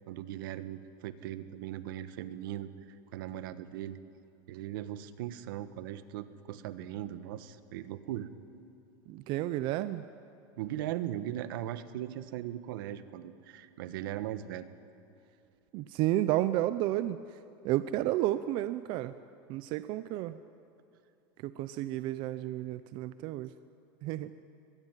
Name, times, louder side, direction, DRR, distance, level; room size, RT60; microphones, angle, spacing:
voice 1, 0.1-2.7 3.1-4.0 4.5-8.3 10.6-14.7, right 12 dB, 75° right, 12 dB, 1.4 m, -39 dB
voice 2, 9.1-10.0 15.7-17.2 17.6-19.1 19.5-20.4 21.4-23.5 24.0-24.3, right 14 dB, 45° right, 13 dB, 0.7 m, -31 dB
23.5 x 21.0 x 9.2 m, 2.6 s
supercardioid pair, 150°, 11 cm